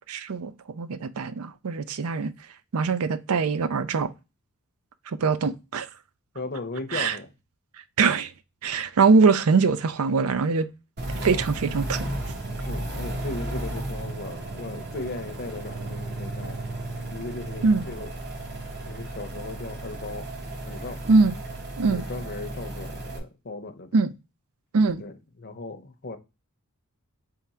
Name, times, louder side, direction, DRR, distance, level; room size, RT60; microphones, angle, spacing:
voice 1, 0.1-2.3 2.7-4.1 5.1-5.9 6.9-7.1 8.0-8.3 8.6-10.7 11.2-12.1 17.6-17.8 21.1-21.3 21.8-22.0 23.9-24.1 24.7-25.0, right 4 dB, 75° right, 0.5 m, -22 dB
voice 2, 6.3-7.3 12.6-16.6 17.1-18.1 18.9-20.3 20.6-21.0 21.9-24.0 25.0-26.2, left 3 dB, 45° left, 0.7 m, -37 dB
sound 1, 11.0-23.2, right 1 dB, 50° right, 1.1 m, -34 dB
3.6 x 3.5 x 4.2 m
head